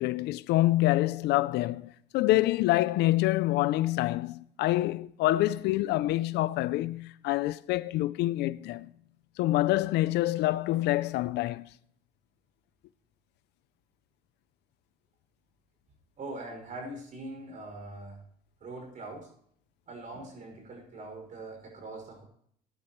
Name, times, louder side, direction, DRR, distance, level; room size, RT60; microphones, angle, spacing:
voice 1, 0.0-8.9 9.4-11.7, left 16 dB, 80° left, 0.5 m, -26 dB
voice 2, 16.2-18.2 18.6-19.3 19.9-22.2, right 2 dB, 50° right, 6.0 m, -42 dB
18.0 x 11.0 x 3.2 m
cardioid pair, 110°, 17 cm